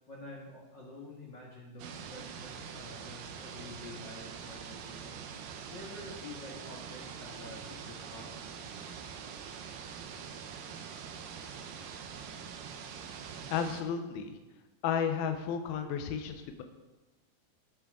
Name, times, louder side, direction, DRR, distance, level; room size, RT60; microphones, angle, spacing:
voice 1, 0.1-5.3 5.7-8.3, left 2 dB, 45° left, -4 dB, 1.5 m, -48 dB
sound 1, 1.8-13.8, right 7 dB, 75° right, 2.3 m, -44 dB
voice 2, 13.5-14.4 14.8-16.6, left 7 dB, 75° left, 6 dB, 2.7 m, -33 dB
19.0 x 6.4 x 3.7 m, 1.2 s
omnidirectional pair, 4.6 m